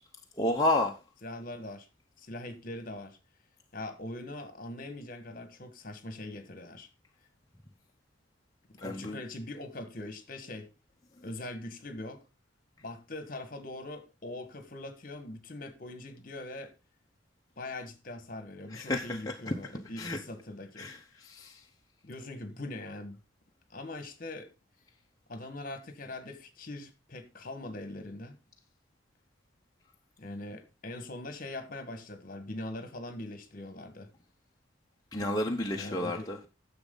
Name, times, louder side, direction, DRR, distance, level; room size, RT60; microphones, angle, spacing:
voice 1, 0.4-0.9 8.8-9.2 18.7-19.5 20.0-20.2 20.8-21.0 21.2-21.6 35.1-36.4, left 1 dB, 20° left, 0.8 m, -30 dB
voice 2, 1.2-1.9 2.2-3.2 3.7-6.9 8.7-10.7 11.2-12.2 12.8-16.7 17.6-20.9 22.0-23.2 23.7-24.5 25.3-28.4 30.2-34.1 35.7-36.3, left 2 dB, 45° left, 1.5 m, -42 dB
10.5 x 7.2 x 3.9 m
head